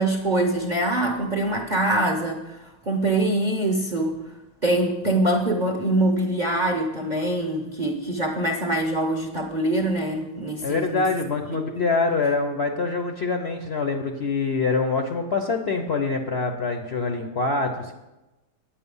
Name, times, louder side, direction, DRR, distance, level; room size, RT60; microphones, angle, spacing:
voice 1, 0.0-4.2 4.6-11.1 11.7-11.8, right 1 dB, 40° right, 3 dB, 0.7 m, -24 dB
voice 2, 10.6-17.9, left 4 dB, 55° left, 4 dB, 0.7 m, -25 dB
9.1 x 8.7 x 5.5 m, 1.0 s
omnidirectional pair, 1.8 m